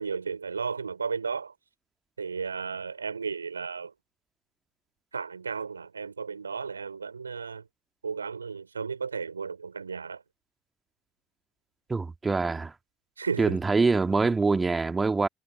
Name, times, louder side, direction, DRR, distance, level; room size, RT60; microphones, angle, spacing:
voice 1, 0.0-1.5 2.2-3.9 5.1-7.6 8.0-10.2 13.2-13.6, right 5 dB, 85° right, 5.8 m, -34 dB
voice 2, 11.9-12.7 13.4-15.3, right 4 dB, 25° right, 2.2 m, -24 dB
figure-of-eight pair, 45°, 0 cm